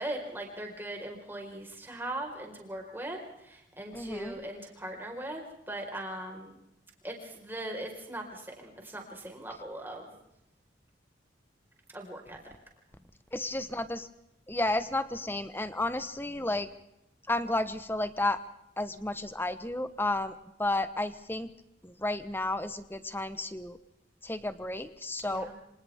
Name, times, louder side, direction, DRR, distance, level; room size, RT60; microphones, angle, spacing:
voice 1, 0.0-6.6 7.0-10.1 11.9-12.5 25.2-25.6, right 1 dB, 10° right, 1 dB, 4.6 m, -40 dB
voice 2, 3.9-4.4 13.3-14.1 14.5-16.7 17.3-18.4 18.8-21.5 21.8-23.8 24.2-25.5, left 2 dB, 10° left, 12 dB, 1.0 m, -32 dB
28.0 x 26.0 x 3.6 m, 0.82 s
head